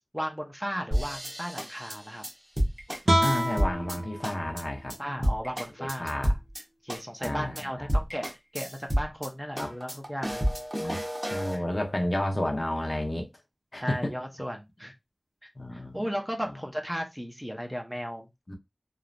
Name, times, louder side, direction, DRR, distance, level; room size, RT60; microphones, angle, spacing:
voice 1, 0.1-2.2 5.0-6.3 6.8-8.3 8.5-10.4 10.8-10.9 11.5-11.6 13.8-14.9 15.4-18.3, equal, 5° right, 0.6 m, -35 dB
sound 1, 0.9-4.0 4.2-4.6 4.9-5.0 5.2-6.6 6.9-7.3 7.6-7.7 7.9-9.3 9.6-11.6, equal, 20° right, 1.0 m, -30 dB
sound 2, 3.1-6.2, right 1 dB, 60° right, 0.5 m, -30 dB
voice 2, 3.2-4.9 5.8-6.3 7.2-7.5 9.6-9.7 10.8-11.0 11.3-13.3 13.7-14.1 15.6-16.0 18.5-18.6, left 1 dB, 45° left, 0.6 m, -31 dB
3.1 x 2.0 x 2.5 m
wide cardioid pair, 45°, 0 cm